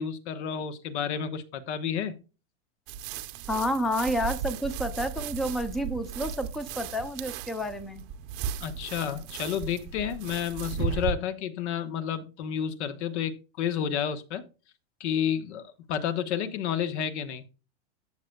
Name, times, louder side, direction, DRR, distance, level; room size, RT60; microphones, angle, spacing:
voice 1, 0.0-2.2 8.6-14.4 15.0-17.4, left 8 dB, 70° left, 1.3 m, -30 dB
sound 1, 2.9-11.1, right 8 dB, 40° right, 0.8 m, -36 dB
voice 2, 3.5-8.0, equal, ahead, 0.5 m, -30 dB
13.5 x 6.8 x 2.3 m
supercardioid pair, 145°, 36 cm